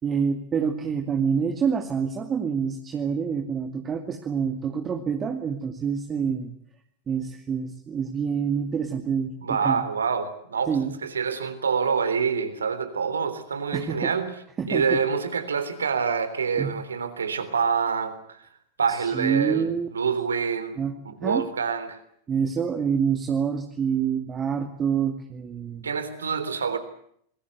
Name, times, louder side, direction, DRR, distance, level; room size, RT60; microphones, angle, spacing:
voice 1, 0.0-6.5 7.1-9.8 10.7-10.9 13.7-14.1 14.6-15.0 16.6-16.7 19.0-19.9 20.8-21.5 22.3-25.9, right 6 dB, 25° right, 5 dB, 2.3 m, -27 dB
voice 2, 9.4-14.3 14.7-18.4 18.8-20.8 21.0-22.0 25.8-26.8, right 6 dB, 70° right, 12 dB, 3.5 m, -26 dB
28.0 x 21.5 x 8.1 m, 0.68 s
figure-of-eight pair, 90°, 0 cm